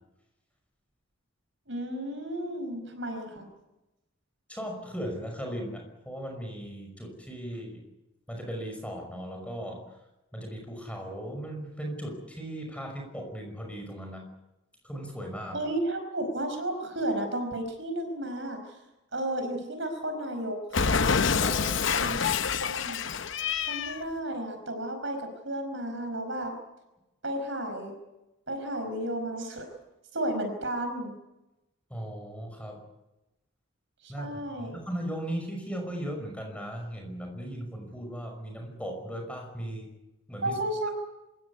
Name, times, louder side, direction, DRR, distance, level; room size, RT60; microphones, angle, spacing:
voice 1, 1.7-3.5 15.5-18.8 19.1-21.0 22.0-22.2 22.7-23.2 23.7-26.5 27.2-27.9 28.5-29.7 30.1-31.1 34.0-34.8 40.4-40.9, right 1 dB, 60° right, 6 dB, 5.1 m, -33 dB
voice 2, 4.5-7.8 8.3-9.8 10.3-14.3 14.8-15.6 21.4-22.2 31.9-32.8 34.1-39.9 40.3-40.6, equal, 5° left, 2 dB, 5.6 m, -37 dB
Cat, 20.7-24.0, left 5 dB, 65° left, 0.8 m, -27 dB
26.0 x 15.5 x 9.6 m, 0.97 s
head